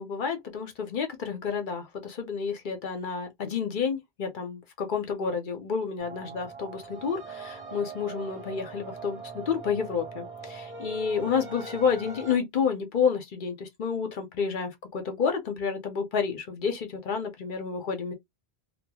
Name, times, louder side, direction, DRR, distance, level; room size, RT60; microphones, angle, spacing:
voice 1, 0.0-18.1, left 6 dB, 55° left, 0.8 m, -30 dB
sound 1, 6.0-12.4, right 4 dB, 10° right, 1.2 m, -41 dB
3.0 x 2.2 x 2.3 m
omnidirectional pair, 1.0 m